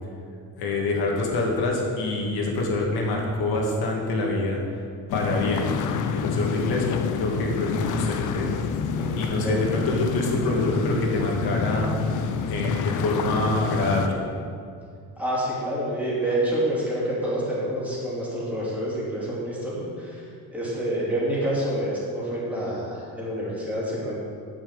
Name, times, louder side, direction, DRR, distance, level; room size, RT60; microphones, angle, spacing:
voice 1, 0.6-4.8 5.1-5.7 6.1-6.8 7.1-8.6 9.2-12.2 12.5-14.2, left 2 dB, 90° left, 0 dB, 2.2 m, -26 dB
sound 1, 5.1-14.1, left 6 dB, 55° left, 0.7 m, -28 dB
voice 2, 9.0-9.6 15.2-24.2, right 1 dB, 5° right, -8 dB, 3.0 m, -28 dB
8.9 x 6.3 x 8.0 m, 2.4 s
cardioid pair, 170°, 36 cm